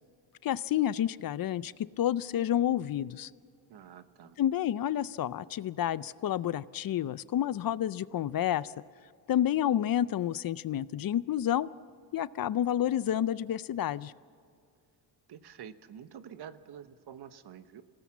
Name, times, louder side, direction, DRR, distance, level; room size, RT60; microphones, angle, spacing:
voice 1, 0.4-3.3 4.4-8.7 9.3-11.7 12.1-14.1, left 11 dB, 55° left, 18 dB, 0.5 m, -29 dB
voice 2, 3.7-4.4 15.3-17.8, right 8 dB, 65° right, 11 dB, 1.1 m, -48 dB
26.5 x 18.0 x 7.3 m, 2.2 s
cardioid pair, 120°, 42 cm